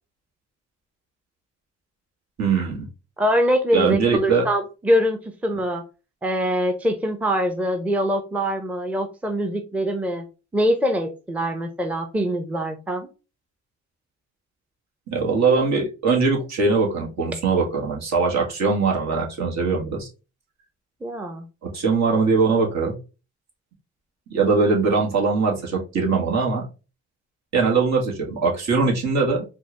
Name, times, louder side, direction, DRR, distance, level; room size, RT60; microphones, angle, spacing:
voice 1, 2.4-2.9 3.7-4.4 15.1-20.1 21.6-23.0 24.3-26.6 27.5-29.4, right 4 dB, 65° right, -1 dB, 1.5 m, -21 dB
voice 2, 3.2-5.8 6.2-10.2 10.5-13.1 21.0-21.5, equal, 5° right, 6 dB, 0.6 m, -23 dB
4.3 x 2.4 x 3.2 m, 0.31 s
cardioid pair, 90°, 30 cm